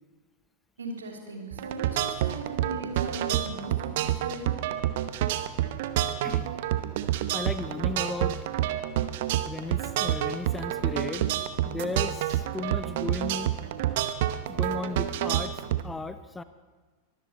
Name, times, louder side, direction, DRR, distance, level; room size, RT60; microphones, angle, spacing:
voice 1, 0.8-4.6, right 2 dB, 70° right, 1 dB, 2.9 m, -38 dB
sound 1, 1.5-15.8, right 12 dB, 50° right, 0.9 m, -28 dB
voice 2, 7.3-8.4 9.5-11.3 11.7-13.5 14.5-16.4, left 3 dB, 10° left, 12 dB, 0.7 m, -35 dB
24.0 x 13.0 x 4.4 m, 1.3 s
figure-of-eight pair, 90°, 0 cm